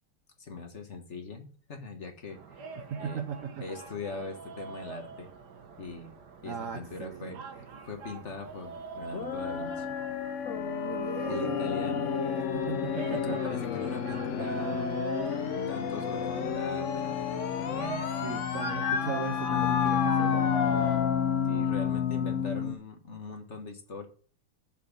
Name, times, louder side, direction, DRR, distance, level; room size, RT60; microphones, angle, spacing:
voice 1, 0.4-3.2 3.6-5.3 5.8-6.1 6.4-9.9 11.3-12.1 13.1-14.9 15.5-17.2 17.6-18.0 21.4-24.1, left 3 dB, 40° left, 5 dB, 1.4 m, -41 dB
sound 1, 2.3-21.0, right 4 dB, 55° right, 1.6 m, -43 dB
voice 2, 2.8-3.6 6.4-7.4 10.8-13.4 18.2-21.1, right 7 dB, 80° right, 8 dB, 0.7 m, -38 dB
sound 2, 9.1-22.7, left 8 dB, 80° left, 0.6 m, -30 dB
7.1 x 5.9 x 7.0 m, 0.41 s
omnidirectional pair, 2.3 m